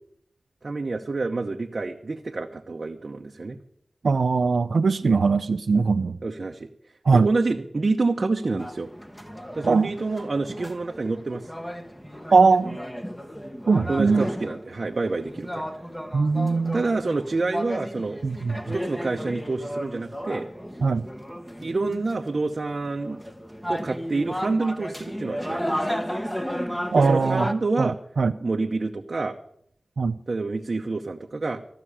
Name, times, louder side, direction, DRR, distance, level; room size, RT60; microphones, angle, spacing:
voice 1, 0.6-3.6 5.0-5.2 6.2-6.7 7.1-8.9 9.5-11.5 13.9-15.7 16.7-18.2 18.7-20.5 21.6-23.2 23.7-26.0 27.0-28.0 28.4-29.4 30.3-31.6, right 3 dB, 55° right, 2 dB, 0.9 m, -27 dB
voice 2, 4.0-6.2 7.0-7.3 9.6-9.9 12.3-12.8 13.7-14.3 16.1-16.8 18.2-18.7 20.8-21.1 26.9-27.5 27.8-28.3 30.0-30.2, right 4 dB, 75° right, 9 dB, 0.5 m, -21 dB
sound 1, 8.6-27.5, equal, 5° left, 1.2 m, -34 dB
14.5 x 6.1 x 9.9 m, 0.71 s
cardioid pair, 55°, 0 cm